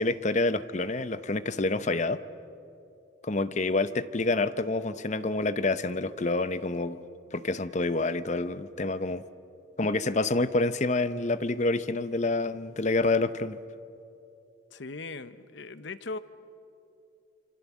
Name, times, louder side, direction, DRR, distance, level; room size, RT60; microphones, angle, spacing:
voice 1, 0.0-2.2 3.2-7.0 7.3-9.2 9.8-13.6, left 2 dB, 35° left, 13 dB, 0.7 m, -27 dB
voice 2, 14.7-16.2, left 3 dB, 65° left, 13 dB, 0.9 m, -39 dB
26.5 x 25.5 x 7.3 m, 2.7 s
head